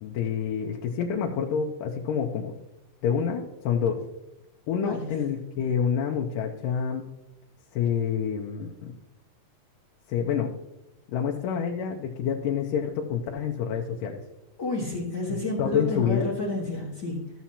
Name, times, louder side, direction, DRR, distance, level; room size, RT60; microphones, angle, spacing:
voice 1, 0.0-2.6 3.0-4.0 4.7-7.0 7.7-8.9 10.1-10.5 11.1-14.2 15.6-16.3, left 7 dB, 90° left, 0 dB, 2.3 m, -28 dB
voice 2, 14.6-17.3, left 2 dB, 45° left, -4 dB, 1.5 m, -30 dB
14.0 x 7.4 x 2.8 m, 0.96 s
omnidirectional pair, 3.8 m